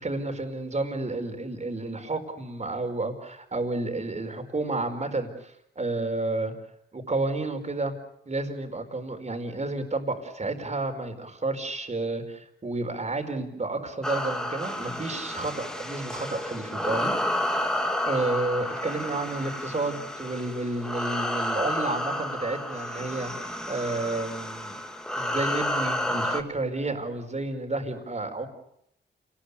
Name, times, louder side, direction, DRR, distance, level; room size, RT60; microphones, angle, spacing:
voice 1, 0.0-6.5 6.9-7.9 8.3-17.1 17.5-17.6 18.1-24.8 25.1-28.5, right 2 dB, 35° right, 5 dB, 4.9 m, -31 dB
sound 1, 14.0-26.4, left 1 dB, 5° left, 2.9 m, -31 dB
28.0 x 20.5 x 8.5 m, 0.76 s
cardioid pair, 80°, 19 cm